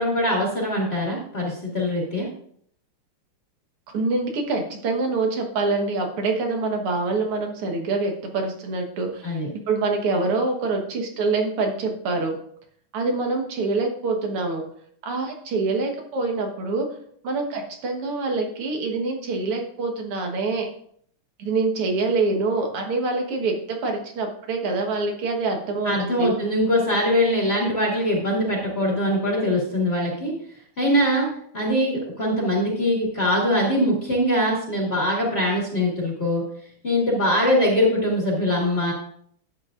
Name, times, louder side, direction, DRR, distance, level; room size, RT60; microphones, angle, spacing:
voice 1, 0.0-2.3 9.2-9.5 25.8-30.3 30.8-31.3 31.5-36.4 36.8-38.9, left 1 dB, 30° left, -4 dB, 2.0 m, -22 dB
voice 2, 3.9-9.4 9.7-12.4 12.9-14.6 15.0-16.9 17.2-20.7 21.4-26.3, right 3 dB, 80° right, 3 dB, 2.3 m, -25 dB
11.5 x 7.7 x 2.5 m, 0.63 s
omnidirectional pair, 2.4 m